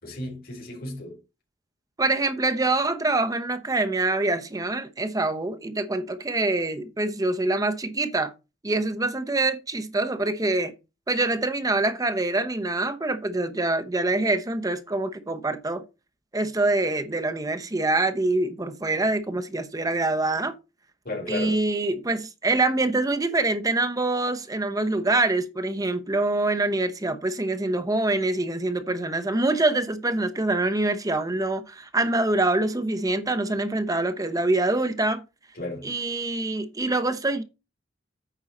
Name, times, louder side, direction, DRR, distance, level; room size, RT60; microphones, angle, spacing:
voice 1, 0.0-1.2 21.0-21.6 35.5-35.9, left 2 dB, 55° left, 4.0 m, -34 dB
voice 2, 2.0-8.3 8.6-10.7 11.1-15.8 16.3-20.5 21.3-35.2 35.8-37.4, right 2 dB, 20° right, 0.9 m, -25 dB
9.0 x 5.5 x 4.3 m
head